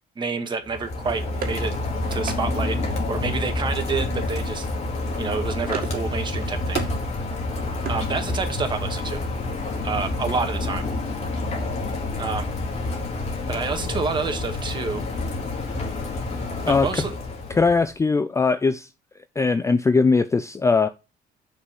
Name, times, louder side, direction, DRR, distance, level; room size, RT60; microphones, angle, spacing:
voice 1, 0.2-1.7 2.1-4.7 5.2-6.8 7.9-9.2 9.8-10.9 12.2-12.5 13.5-15.1 16.7-17.1, right 4 dB, 25° right, 1.8 m, -28 dB
Rain, 0.6-17.9, left 2 dB, 40° left, 2.5 m, -28 dB
sound 1, 1.0-2.4 3.7-4.1 4.4-4.7 5.0-6.1 6.3-7.0 7.3-8.6, right 7 dB, 60° right, 2.1 m, -36 dB
voice 2, 17.5-18.9 19.4-20.9, left 4 dB, 15° left, 0.5 m, -20 dB
6.6 x 5.6 x 6.1 m
cardioid pair, 110°, 17 cm